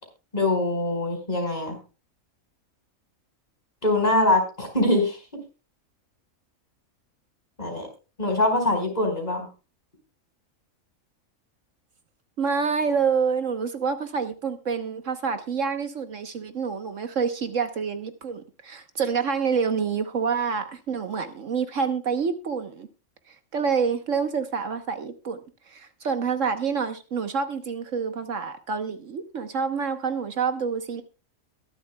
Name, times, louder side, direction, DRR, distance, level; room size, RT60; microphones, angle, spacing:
voice 1, 0.3-1.8 3.8-5.2 7.6-7.9 8.2-9.5, left 2 dB, 30° left, 3 dB, 4.6 m, -23 dB
voice 2, 12.4-22.9 23.3-25.4 25.7-31.0, right 6 dB, 65° right, 8 dB, 1.4 m, -27 dB
22.5 x 7.7 x 2.2 m, 0.33 s
omnidirectional pair, 1.5 m